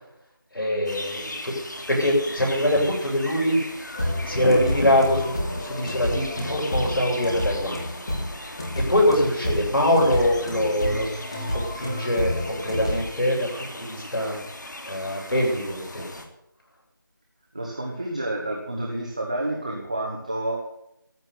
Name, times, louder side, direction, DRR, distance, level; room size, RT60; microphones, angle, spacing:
voice 1, 0.5-3.6 4.2-7.8 8.9-13.5 13.7-14.4 14.9-16.2, left 1 dB, 80° left, -1 dB, 7.9 m, -23 dB
sound 1, 0.9-16.3, left 1 dB, 60° left, 2.9 m, -39 dB
sound 2, 3.9-13.0, left 1 dB, 15° left, 1.5 m, -29 dB
voice 2, 17.5-20.7, right 1 dB, 20° right, 0 dB, 1.1 m, -29 dB
14.0 x 8.5 x 9.7 m, 0.82 s
figure-of-eight pair, 175°, 11 cm